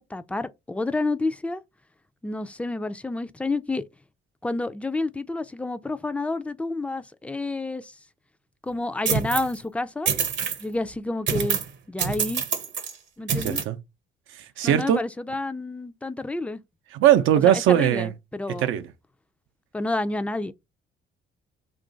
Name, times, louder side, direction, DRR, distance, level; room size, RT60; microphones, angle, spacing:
voice 1, 0.0-1.6 2.2-3.8 4.4-7.9 8.6-10.1 10.6-11.6 11.9-12.4 13.2-13.6 14.6-16.6 17.4-18.8 19.7-20.5, left 2 dB, 5° left, 0.3 m, -29 dB
sound 1, 9.1-9.5 10.1-10.6 11.3-11.7 12.0-12.9 13.3-13.6, right 7 dB, 70° right, 0.9 m, -26 dB
voice 2, 13.4-13.8 14.4-15.0 16.9-18.1 18.6-18.9, right 11 dB, 85° right, 0.5 m, -20 dB
2.9 x 2.4 x 3.8 m
cardioid pair, 90°, 20 cm